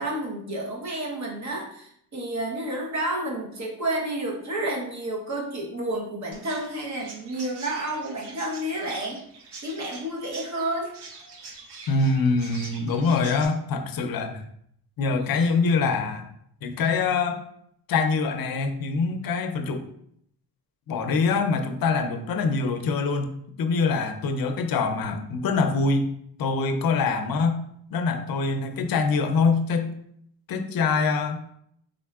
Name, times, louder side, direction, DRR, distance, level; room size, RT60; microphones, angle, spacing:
voice 1, 0.0-9.2 9.6-10.9, right 1 dB, 45° right, -1 dB, 1.0 m, -30 dB
Chirp tweet, 6.3-13.5, right 4 dB, 80° right, 0.8 m, -44 dB
voice 2, 11.9-14.5 15.0-16.3 16.6-17.4 17.9-19.8 20.9-23.3 23.6-26.1 26.4-27.6 27.9-29.9 30.5-31.5, left 4 dB, 60° left, 7 dB, 0.5 m, -24 dB
3.8 x 3.5 x 2.3 m, 0.70 s
wide cardioid pair, 130°, 40 cm